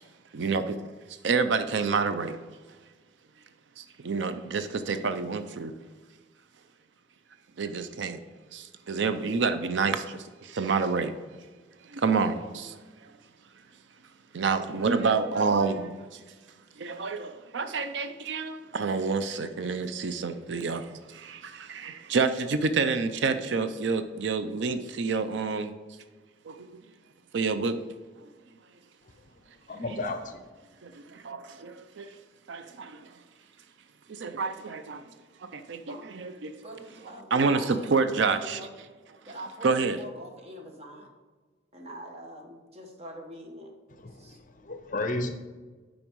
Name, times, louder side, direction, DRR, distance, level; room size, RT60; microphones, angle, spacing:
voice 1, 0.3-0.8 1.2-2.4 3.8-5.7 7.6-8.2 8.5-11.1 11.9-12.8 14.3-16.2 16.8-25.7 26.5-26.8 27.3-27.8 30.8-32.1 32.5-33.1 34.1-35.0 35.5-36.5 37.3-38.6 39.6-40.0, right 4 dB, 70° right, 10 dB, 0.5 m, -28 dB
voice 2, 29.6-30.4 43.9-45.3, left 2 dB, 40° left, 7 dB, 0.7 m, -33 dB
voice 3, 35.9-36.2 36.6-38.7 39.2-41.1 41.7-43.7 44.1-44.4, right 1 dB, 35° right, 2 dB, 1.2 m, -44 dB
8.8 x 5.1 x 4.6 m, 1.4 s
head